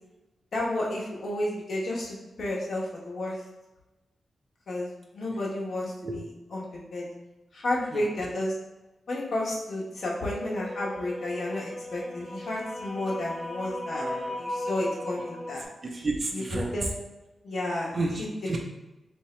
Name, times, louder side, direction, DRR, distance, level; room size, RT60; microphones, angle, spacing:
voice 1, 0.5-3.4 4.7-6.6 6.9-7.1 7.5-8.5 9.1-14.0 14.4-15.7 16.3-16.4 16.7-16.9 17.4-18.6, left 1 dB, 60° left, -4 dB, 1.0 m, -32 dB
sound 1, 10.0-15.6, left 1 dB, 10° left, 0.5 m, -37 dB
voice 2, 13.9-14.4 15.8-16.7 17.9-18.6, right 2 dB, 40° right, 1 dB, 0.6 m, -31 dB
2.8 x 2.7 x 4.3 m, 1.0 s
wide cardioid pair, 110°, 0 cm